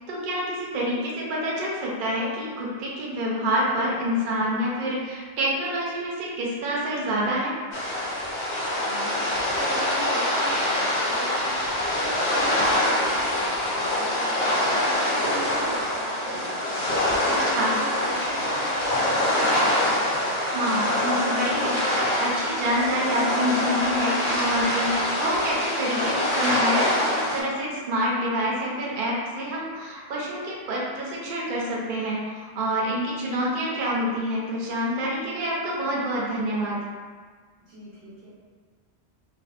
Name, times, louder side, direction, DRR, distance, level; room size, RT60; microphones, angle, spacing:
voice 1, 0.1-7.6 17.2-17.7 20.5-36.8, equal, 60° right, -4 dB, 0.7 m, -27 dB
sound 1, 7.7-27.4, left 1 dB, 70° left, 0.9 m, -25 dB
voice 2, 8.8-11.5 11.9-19.8 37.6-38.3, right 2 dB, 85° right, -10 dB, 1.1 m, -40 dB
2.5 x 2.3 x 2.4 m, 1.5 s
omnidirectional pair, 1.1 m